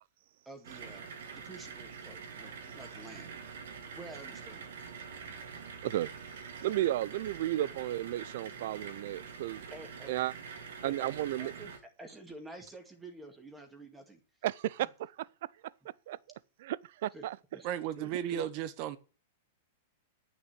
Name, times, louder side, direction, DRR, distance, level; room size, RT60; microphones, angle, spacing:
voice 1, 0.5-3.3 3.9-4.7 9.7-10.2 10.8-11.1 11.4-11.7 12.0-14.2 14.8-14.9 17.1-17.3 17.5-17.7 18.0-18.5, right 2 dB, 10° right, 2.1 m, -49 dB
sound 1, 0.6-11.8, right 6 dB, 80° right, 2.5 m, -45 dB
voice 2, 6.6-9.7 10.1-10.3 10.8-11.5 14.4-15.3 16.1-16.2 16.6-17.4, right 14 dB, 65° right, 0.5 m, -33 dB
voice 3, 17.6-19.0, right 10 dB, 45° right, 1.1 m, -34 dB
9.6 x 6.2 x 8.3 m
hypercardioid pair, 140°, 0 cm